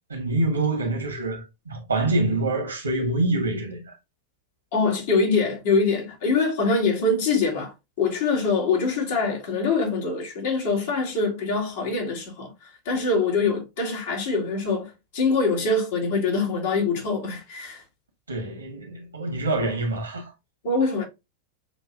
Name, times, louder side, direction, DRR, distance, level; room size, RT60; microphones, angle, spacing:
voice 1, 0.1-3.8 18.3-20.3, right 2 dB, 75° right, 1.7 m, -26 dB
voice 2, 4.7-17.8 20.6-21.0, left 4 dB, 55° left, 2.1 m, -24 dB
6.9 x 3.0 x 2.5 m
figure-of-eight pair, 90°, 0 cm